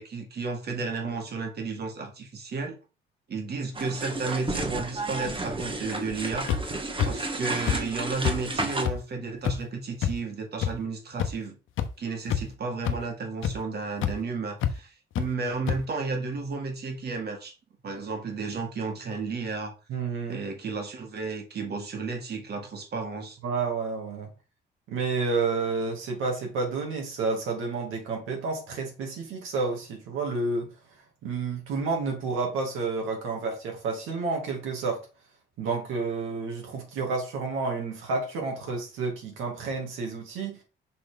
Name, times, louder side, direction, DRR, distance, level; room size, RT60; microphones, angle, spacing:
voice 1, 0.0-2.8 3.3-6.5 7.0-11.6 12.0-17.5 17.8-19.7 20.3-23.4, right 4 dB, 55° right, 2.2 m, -33 dB
sound 1, 3.7-8.9, right 2 dB, 25° right, 1.3 m, -32 dB
sound 2, 6.5-6.6 7.0-7.1 7.7-7.8 8.2-8.4 8.8-8.9 9.4-9.6 10.0-10.1 10.6-10.7 11.2-11.3 11.8-11.9 12.3-12.5 12.8-13.0 13.4-13.5 14.0-14.1 14.6-14.7 15.2-15.3 15.7-15.8, left 10 dB, 80° left, 0.9 m, -25 dB
voice 2, 19.9-20.4 23.4-24.3 24.9-30.7 31.2-35.0 35.6-40.6, right 4 dB, 90° right, 2.4 m, -30 dB
6.0 x 4.0 x 5.1 m
cardioid pair, 90°, 20 cm